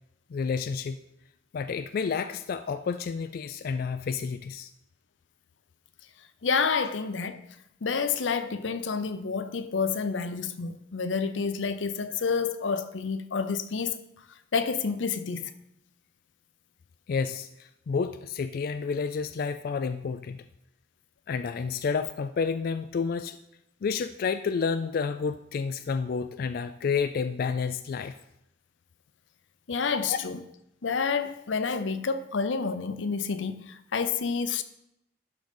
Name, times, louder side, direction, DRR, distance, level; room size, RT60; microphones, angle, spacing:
voice 1, 0.3-1.0 1.5-4.7 17.1-20.4 21.3-23.4 23.8-28.1 30.1-30.2, left 5 dB, 55° left, 0.3 m, -30 dB
voice 2, 6.4-7.4 7.8-13.9 14.5-15.5 29.7-30.4 30.8-34.6, left 5 dB, 90° left, 0.7 m, -29 dB
11.5 x 3.9 x 5.4 m
head